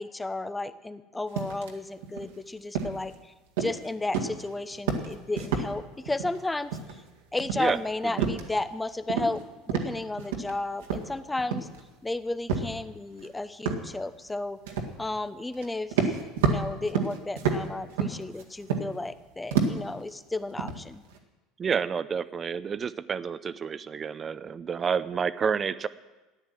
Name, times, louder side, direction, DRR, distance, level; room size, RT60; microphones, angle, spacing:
voice 1, 0.0-3.3 3.6-6.8 7.3-11.7 12.0-14.6 15.0-16.0 16.4-21.0, left 2 dB, 10° left, 13 dB, 0.9 m, -33 dB
sound 1, 1.4-1.7 2.0-2.3 2.7-3.1 3.6-3.9 4.1-4.5 4.7-5.7 6.1-6.4 6.7-7.1 7.4-8.8 9.1-9.4 9.7-10.5 10.8-11.8 12.5-12.7 13.2-13.3 13.7-13.9 14.7-15.0 15.5-15.7 15.9-19.1 19.5-19.9 20.3-21.2, right 6 dB, 75° right, 1.9 m, -29 dB
voice 2, 21.6-25.9, right 6 dB, 35° right, 15 dB, 0.7 m, -29 dB
14.0 x 10.0 x 7.7 m, 1.1 s
hypercardioid pair, 75°, 0 cm